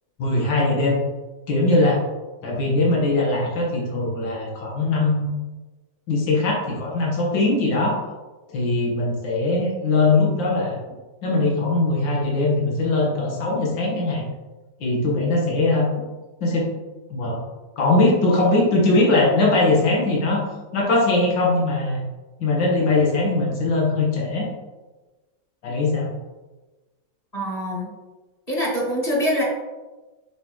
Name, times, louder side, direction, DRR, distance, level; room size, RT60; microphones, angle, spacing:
voice 1, 0.2-1.0 1.5-2.0 2.4-5.4 6.1-8.0 8.5-10.8 11.2-14.2 14.8-15.9 16.4-16.7 17.1-17.4 17.8-20.4 20.7-22.0 22.4-24.5 25.6-26.1, left 2 dB, 85° left, -3 dB, 2.3 m, -21 dB
voice 2, 27.3-27.9 28.5-29.4, equal, 20° left, -4 dB, 2.3 m, -24 dB
7.9 x 6.0 x 3.2 m, 1.2 s
omnidirectional pair, 2.0 m